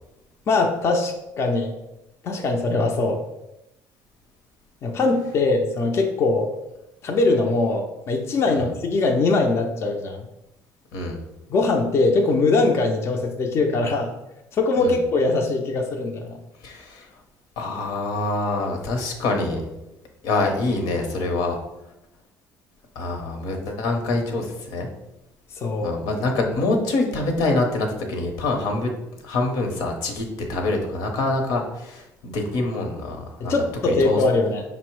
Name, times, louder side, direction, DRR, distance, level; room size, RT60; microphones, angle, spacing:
voice 1, 0.5-1.7 2.2-3.2 4.8-6.5 7.0-10.3 11.5-14.1 14.5-16.4 25.6-26.0 33.4-34.6, left 3 dB, 40° left, 2 dB, 0.5 m, -22 dB
voice 2, 16.6-17.1 17.6-19.6 20.2-21.6 22.9-24.9 25.8-28.9 29.2-33.5 33.8-34.2, left 2 dB, 80° left, 3 dB, 0.9 m, -25 dB
5.2 x 2.1 x 4.6 m, 0.92 s
cardioid pair, 120°, 6 cm